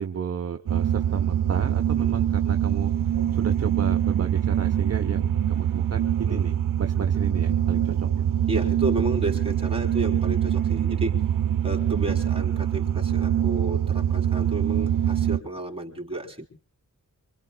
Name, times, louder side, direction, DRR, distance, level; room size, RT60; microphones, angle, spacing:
voice 1, 0.0-2.9 3.3-8.2, right 6 dB, 45° right, 6 dB, 0.9 m, -32 dB
sound 1, 0.7-15.4, right 10 dB, 75° right, 0.8 m, -24 dB
voice 2, 8.5-11.1 11.6-16.5, right 2 dB, 15° right, 1 dB, 3.7 m, -32 dB
25.5 x 24.5 x 2.3 m, 0.41 s
wide cardioid pair, 105°, 33 cm